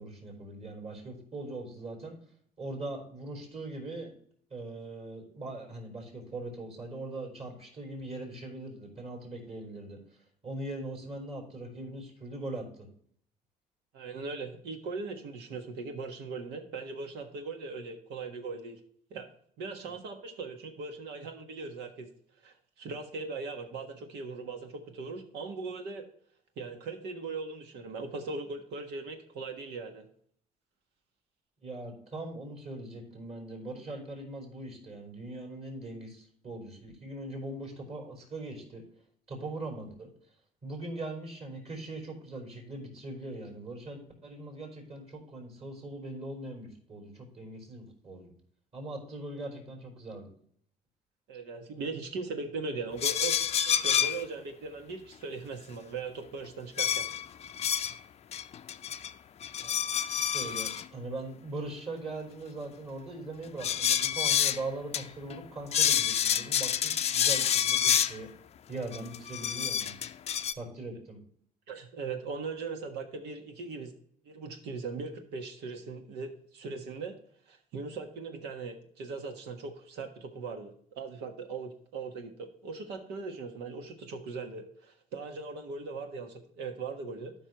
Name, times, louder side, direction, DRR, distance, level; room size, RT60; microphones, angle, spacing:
voice 1, 0.0-2.1 2.6-4.1 4.5-10.0 10.4-12.7 31.6-38.8 39.3-40.1 40.6-48.3 48.7-50.3 59.6-59.8 60.1-68.3 68.7-69.9 70.5-71.2, right 2 dB, 40° right, 1 dB, 4.1 m, -41 dB
voice 2, 13.9-18.8 19.1-19.3 19.6-22.1 22.4-26.0 26.6-30.1 51.3-53.4 53.6-57.1 71.7-73.9 74.2-77.2 77.5-87.3, right 4 dB, 85° right, 5 dB, 1.5 m, -39 dB
sound 1, 53.0-54.2 56.8-58.0 58.3-59.1 59.4-60.9 63.6-64.6 64.9-65.0 65.3-65.4 65.7-68.2 68.9-70.5, left 9 dB, 40° left, 0.5 m, -28 dB
12.5 x 5.5 x 3.0 m, 0.62 s
cardioid pair, 110°, 17 cm